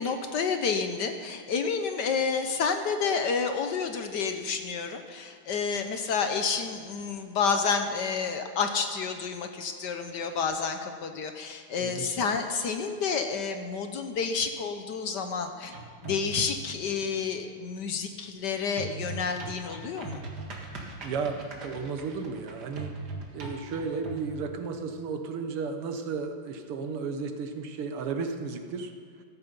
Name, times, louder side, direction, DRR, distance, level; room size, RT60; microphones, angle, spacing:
voice 1, 0.0-15.7 16.0-20.2, left 5 dB, 60° left, 7 dB, 1.2 m, -30 dB
voice 2, 11.8-12.1 21.0-22.9 23.3-28.9, right 5 dB, 85° right, 6 dB, 2.1 m, -34 dB
sound 1, 15.6-16.8 18.8-24.3, right 3 dB, 50° right, 2.3 m, -40 dB
14.5 x 14.0 x 5.3 m, 2.1 s
omnidirectional pair, 2.4 m